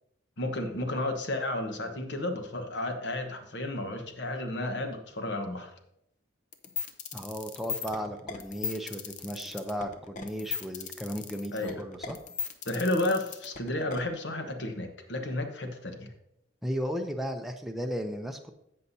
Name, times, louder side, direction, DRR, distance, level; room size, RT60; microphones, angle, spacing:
voice 1, 0.4-5.7 11.5-11.8 12.6-16.1, left 1 dB, 65° left, 5 dB, 1.1 m, -32 dB
sound 1, 6.5-14.0, left 6 dB, 40° left, 0.7 m, -37 dB
voice 2, 7.1-12.2 16.6-18.5, equal, ahead, 3 dB, 0.5 m, -35 dB
16.0 x 5.6 x 2.7 m, 0.79 s
head